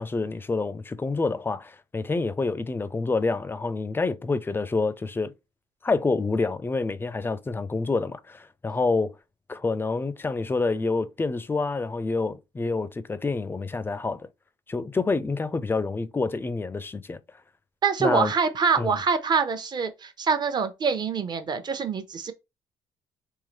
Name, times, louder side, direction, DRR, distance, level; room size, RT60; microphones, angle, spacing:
voice 1, 0.0-5.3 5.8-9.1 9.5-14.3 14.7-17.2 18.0-18.3 18.8-19.0, left 3 dB, 20° left, 0.5 m, -27 dB
voice 2, 17.8-22.3, right 5 dB, 40° right, 0.8 m, -25 dB
3.7 x 2.9 x 3.2 m
cardioid pair, 95°, 11 cm